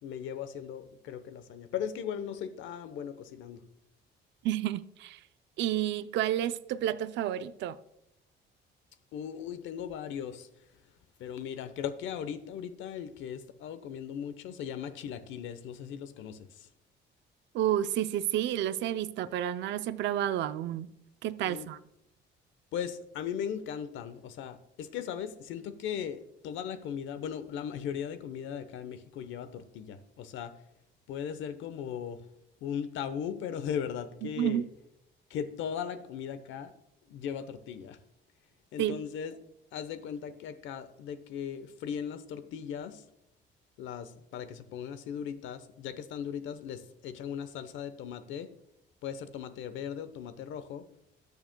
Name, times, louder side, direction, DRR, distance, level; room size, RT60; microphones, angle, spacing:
voice 1, 0.0-3.6 9.1-10.5 11.2-16.7 21.4-21.7 22.7-30.6 31.1-32.3 32.6-34.7 35.3-36.7 37.1-38.0 38.7-39.4 39.7-43.0 43.8-48.5 49.0-50.8, left 8 dB, 80° left, 0.9 m, -38 dB
voice 2, 4.4-5.2 5.6-7.8 17.5-20.9 21.2-21.8 34.2-34.6 38.8-39.0, right 11 dB, 70° right, 0.5 m, -30 dB
19.0 x 6.8 x 2.2 m
cardioid pair, 130°, 20 cm